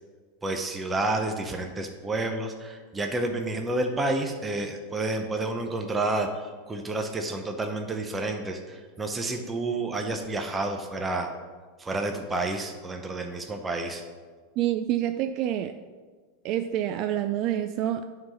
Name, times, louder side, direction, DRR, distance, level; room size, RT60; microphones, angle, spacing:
voice 1, 0.4-11.3 11.8-14.0, right 2 dB, 15° right, 4 dB, 0.6 m, -30 dB
voice 2, 14.6-15.7 16.4-18.1, right 11 dB, 45° right, 9 dB, 0.3 m, -27 dB
8.7 x 3.9 x 5.5 m, 1.5 s
supercardioid pair, 130°, 0 cm